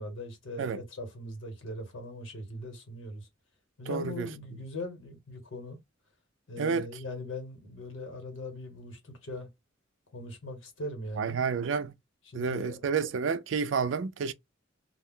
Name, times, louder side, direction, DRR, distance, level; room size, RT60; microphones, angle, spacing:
voice 1, 0.0-3.3 3.8-5.8 6.5-9.5 10.1-11.4 12.2-13.0, left 1 dB, 90° left, 1.3 m, -40 dB
voice 2, 3.9-4.3 6.6-6.9 11.2-11.9 12.3-14.3, right 5 dB, 75° right, 0.4 m, -30 dB
2.3 x 2.2 x 3.6 m
head